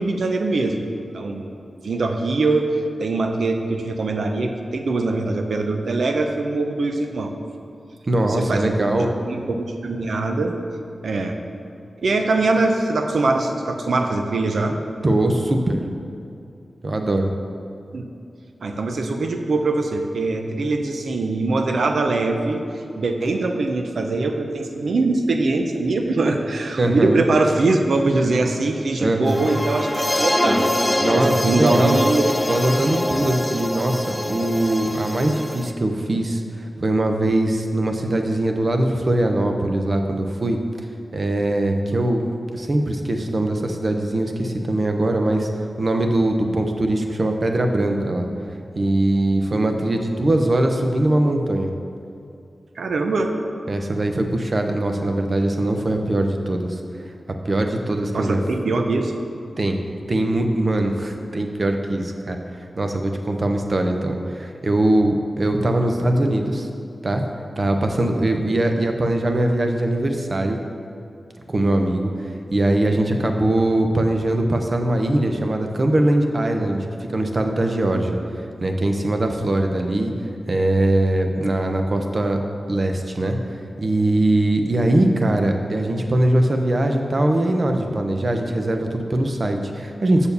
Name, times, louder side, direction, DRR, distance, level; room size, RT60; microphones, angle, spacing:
voice 1, 0.0-1.5 1.8-7.3 8.2-10.6 11.0-11.4 12.0-14.8 17.9-18.0 18.6-22.6 23.0-30.7 31.1-32.3 41.9-42.1 52.8-53.3 58.1-59.1, right 3 dB, 80° right, 4 dB, 0.6 m, -22 dB
voice 2, 8.1-9.1 15.0-15.8 16.8-17.3 26.8-27.2 29.0-29.4 31.0-31.9 32.5-40.6 41.1-42.2 42.5-45.5 45.8-48.3 48.8-51.7 53.7-56.8 57.4-58.4 59.6-59.8 60.1-62.4 62.8-66.7 67.0-67.2 67.6-70.6 71.5-80.1 80.5-82.4 82.7-83.4 83.8-90.3, right 1 dB, 45° right, 4 dB, 0.7 m, -21 dB
sound 1, 29.3-35.7, left 1 dB, 15° left, 0.4 m, -24 dB
7.0 x 4.3 x 6.8 m, 2.6 s
wide cardioid pair, 95°, 0 cm